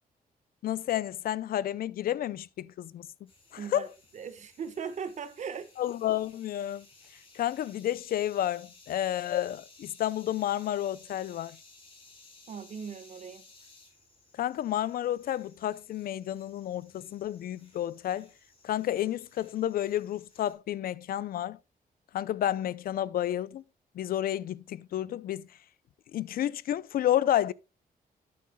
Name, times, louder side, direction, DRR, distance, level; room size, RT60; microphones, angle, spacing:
voice 1, 0.6-3.1 3.5-3.9 5.8-6.8 7.3-11.6 14.4-18.3 18.6-21.6 22.1-23.6 23.9-25.5 26.1-27.5, left 12 dB, 70° left, 0.5 m, -30 dB
sound 1, 3.3-20.5, left 3 dB, 35° left, 4.3 m, -58 dB
voice 2, 3.6-3.9 4.1-5.7 12.5-13.4, right 6 dB, 50° right, 1.2 m, -38 dB
12.5 x 8.5 x 2.2 m
wide cardioid pair, 160°, 16 cm